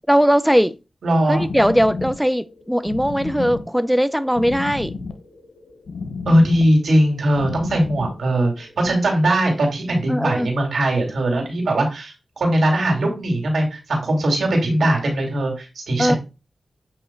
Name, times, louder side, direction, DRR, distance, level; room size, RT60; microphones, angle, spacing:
voice 1, 0.1-0.8 1.3-4.9 10.1-10.5 16.0-16.2, equal, ahead, 0.5 m, -19 dB
voice 2, 1.0-1.4 6.3-16.2, right 1 dB, 85° right, 2.5 m, -20 dB
sound 1, 1.4-8.9, left 4 dB, 80° left, 0.8 m, -32 dB
7.9 x 3.0 x 4.5 m
cardioid pair, 40°, 0 cm